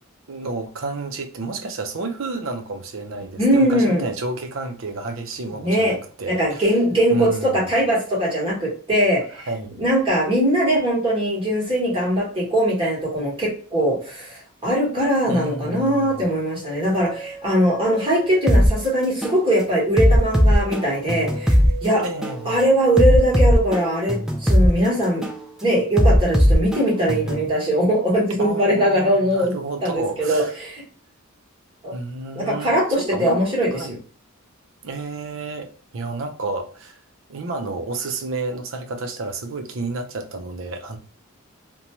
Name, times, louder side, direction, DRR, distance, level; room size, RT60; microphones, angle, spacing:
voice 1, 0.3-6.7 7.1-7.7 9.5-9.8 15.2-16.3 22.0-22.6 28.4-30.5 31.9-33.4 33.7-34.0 34.8-37.0 37.3-41.0, right 3 dB, 65° right, 0.5 m, -30 dB
voice 2, 3.4-4.1 5.6-5.9 6.3-9.5 9.8-22.0 22.4-25.3 25.6-29.5 29.8-30.8 31.8-31.9 32.3-34.0, equal, 25° right, 1.2 m, -21 dB
sound 1, 15.9-23.0, right 1 dB, 75° left, 0.6 m, -38 dB
sound 2, 18.5-18.7 19.2-19.4 20.0-21.7 22.2-22.4 23.0-24.7 25.2-25.4 26.0-27.5, equal, 5° right, 0.3 m, -17 dB
2.6 x 2.2 x 2.9 m
head